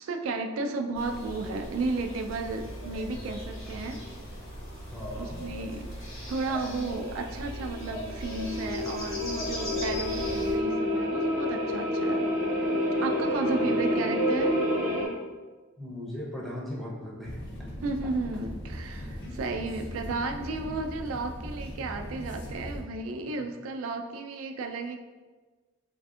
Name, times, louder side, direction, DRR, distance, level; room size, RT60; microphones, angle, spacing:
voice 1, 0.0-4.1 5.2-5.9 6.3-12.3 13.0-14.6 17.8-25.0, right 3 dB, 85° right, 5 dB, 0.3 m, -33 dB
sound 1, 0.9-10.5, equal, 80° left, 1.2 m, -39 dB
voice 2, 4.9-5.5 13.5-13.7 15.8-17.7 19.2-19.6, left 1 dB, ahead, -6 dB, 0.5 m, -39 dB
sound 2, 7.0-15.1, left 1 dB, 65° right, 0.7 m, -29 dB
sound 3, 17.2-22.8, equal, 60° left, 0.6 m, -39 dB
3.3 x 2.5 x 2.4 m, 1.3 s
head